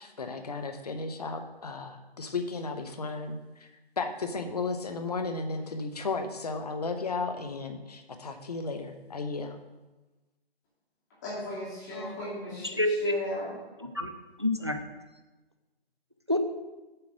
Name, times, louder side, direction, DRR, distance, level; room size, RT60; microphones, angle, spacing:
voice 1, 0.0-3.7 4.0-9.6, left 3 dB, 40° left, 7 dB, 0.8 m, -34 dB
voice 2, 11.2-13.5, left 1 dB, 15° left, -7 dB, 2.3 m, -37 dB
voice 3, 12.6-13.2 13.8-14.1 14.4-14.8 16.3-16.4, left 1 dB, 30° right, 7 dB, 0.4 m, -28 dB
7.6 x 4.9 x 6.4 m, 1.1 s
hypercardioid pair, 170°, 31 cm